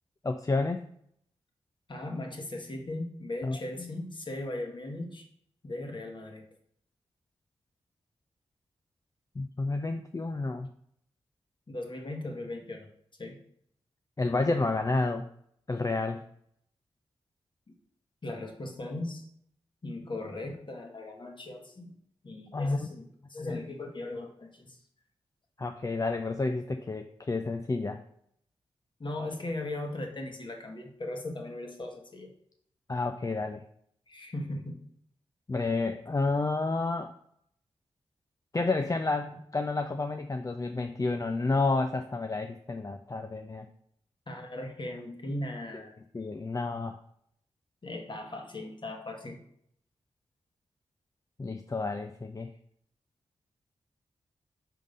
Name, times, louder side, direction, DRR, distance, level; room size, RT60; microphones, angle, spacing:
voice 1, 0.2-0.9 3.4-4.0 9.4-10.7 14.2-15.3 15.7-16.2 22.5-22.9 23.4-23.6 25.6-28.0 32.9-33.6 35.5-37.1 38.5-43.7 45.7-45.8 46.1-47.0 51.4-52.5, left 3 dB, 30° left, 6 dB, 0.5 m, -30 dB
voice 2, 1.9-5.3 5.6-6.4 11.7-12.9 13.2-13.4 17.7-17.8 18.2-19.2 19.8-21.9 22.2-24.8 29.0-32.3 34.1-34.8 44.3-46.0 47.8-49.4, left 2 dB, 45° left, 2 dB, 1.6 m, -38 dB
5.1 x 3.7 x 5.3 m, 0.68 s
supercardioid pair, 40°, 11 cm